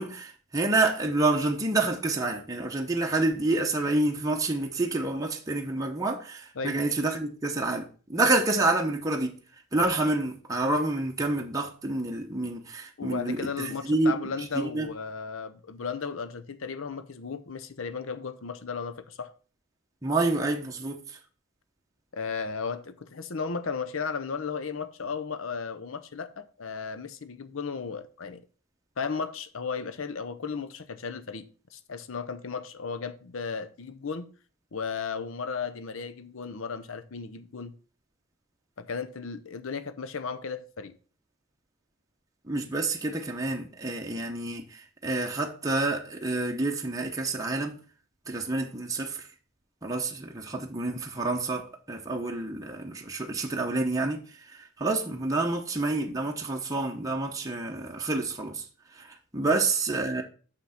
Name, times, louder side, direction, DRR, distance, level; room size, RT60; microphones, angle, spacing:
voice 1, 0.0-9.3 9.7-14.2 14.5-14.9 20.0-21.2 42.5-47.8 48.3-49.3 49.8-58.7 58.9-60.2, right 2 dB, 15° right, 0.9 m, -28 dB
voice 2, 13.0-19.3 22.1-28.4 29.0-34.3 34.7-37.7 38.8-40.9 59.4-59.6, left 5 dB, 65° left, 0.7 m, -35 dB
6.7 x 5.9 x 5.8 m
head